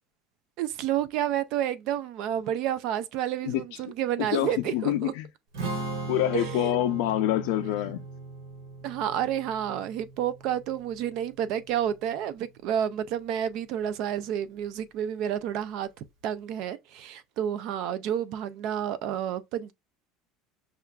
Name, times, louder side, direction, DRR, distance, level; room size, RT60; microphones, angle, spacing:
voice 1, 0.6-5.1 6.3-6.8 8.8-19.7, right 10 dB, 50° right, 0.4 m, -30 dB
voice 2, 4.3-5.3 6.1-8.0, left 13 dB, 75° left, 0.4 m, -26 dB
Strum, 5.5-11.8, right 3 dB, 85° right, 1.3 m, -38 dB
5.6 x 2.4 x 2.2 m
cardioid pair, 170°, 0 cm